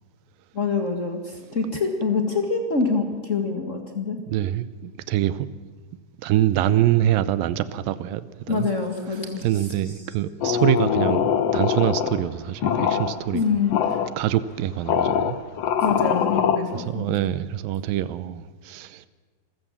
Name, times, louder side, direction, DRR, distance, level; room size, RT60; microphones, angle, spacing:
voice 1, 0.5-4.2 8.5-9.9 13.3-13.8 15.8-17.1, left 4 dB, 60° left, 0.8 m, -25 dB
voice 2, 4.3-5.5 6.2-8.7 9.4-13.4 14.2-15.4 16.7-19.0, right 12 dB, 75° right, 2.3 m, -25 dB
sound 1, 10.4-12.2 12.6-13.2 13.7-14.1 14.9-16.6, left 8 dB, 90° left, 1.3 m, -23 dB
27.0 x 15.0 x 7.3 m
omnidirectional pair, 4.5 m